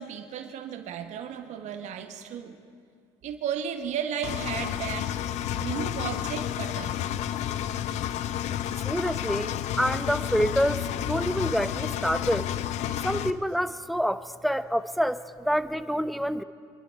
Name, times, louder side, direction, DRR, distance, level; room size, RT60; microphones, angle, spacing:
voice 1, 0.0-2.6 3.2-5.2 5.6-7.0 8.4-8.9, right 8 dB, 65° right, 7 dB, 1.3 m, -34 dB
Engine, 4.2-13.3, left 11 dB, 60° left, 0.6 m, -31 dB
voice 2, 8.8-12.5 13.0-16.4, equal, ahead, 13 dB, 0.7 m, -27 dB
25.5 x 11.5 x 4.7 m, 2.3 s
hypercardioid pair, 70°, 13 cm